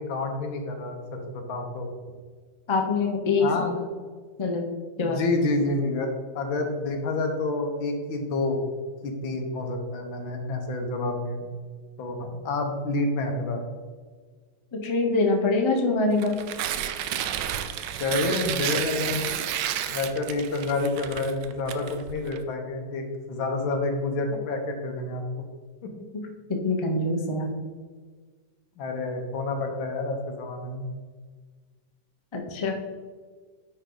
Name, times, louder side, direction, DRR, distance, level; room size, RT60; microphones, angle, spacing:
voice 1, 0.0-1.9 3.4-3.9 5.0-6.1 6.4-8.6 9.0-11.5 12.0-13.6 17.9-19.2 19.9-25.4 25.8-25.9 28.8-30.9, left 2 dB, 85° left, 3 dB, 1.8 m, -28 dB
voice 2, 2.7-3.5 4.4-4.7 5.0-5.2 14.8-16.3 26.6-27.6 32.3-32.7, left 3 dB, 25° left, 2 dB, 0.6 m, -24 dB
Tearing, 16.1-22.4, right 10 dB, 75° right, 1.2 m, -31 dB
9.9 x 4.4 x 3.9 m, 1.5 s
omnidirectional pair, 2.1 m